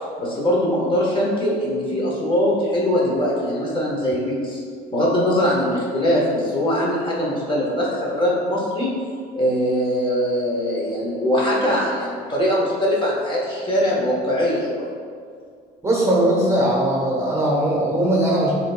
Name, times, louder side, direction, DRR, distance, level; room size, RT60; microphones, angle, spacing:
voice 1, 0.2-4.6 4.9-8.9 9.4-14.9, equal, 30° left, -5 dB, 1.1 m, -21 dB
voice 2, 15.8-18.5, right 1 dB, 15° right, -4 dB, 1.0 m, -19 dB
7.3 x 2.9 x 2.2 m, 2.1 s
cardioid pair, 110°, 17 cm